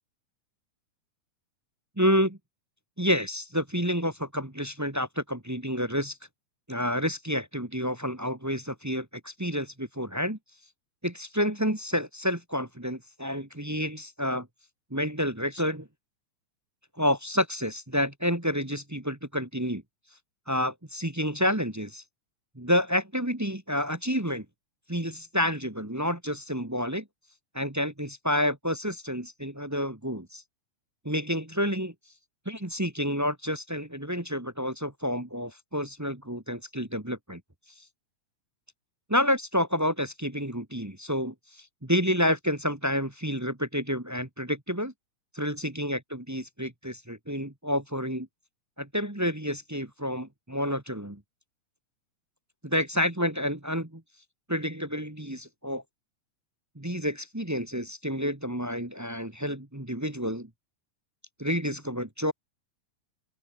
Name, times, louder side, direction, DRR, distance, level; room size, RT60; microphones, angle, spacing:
voice 1, 2.0-2.4 3.0-6.2 6.7-10.4 11.0-14.5 14.9-15.9 17.0-19.8 20.5-22.0 22.5-24.4 24.9-27.1 27.5-30.4 31.0-31.9 32.4-37.4 39.1-44.9 45.3-48.3 48.8-51.2 52.6-54.0 54.5-55.8 56.7-60.5 61.4-62.3, equal, 10° right, 0.7 m, -29 dB
open air
omnidirectional pair, 3.4 m